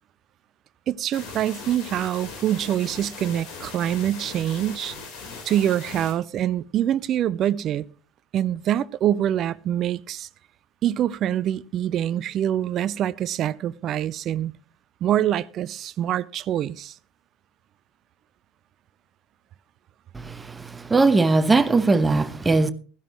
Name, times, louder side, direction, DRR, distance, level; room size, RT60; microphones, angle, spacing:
voice 1, 0.9-5.0 5.4-7.8 8.3-10.3 10.8-14.6 15.0-17.0, right 11 dB, 40° right, 0.5 m, -25 dB
sound 1, 1.1-6.1, left 4 dB, 50° left, 3.9 m, -39 dB
voice 2, 20.1-22.7, right 3 dB, 15° right, 1.0 m, -20 dB
16.0 x 13.0 x 3.0 m
figure-of-eight pair, 70°, 0 cm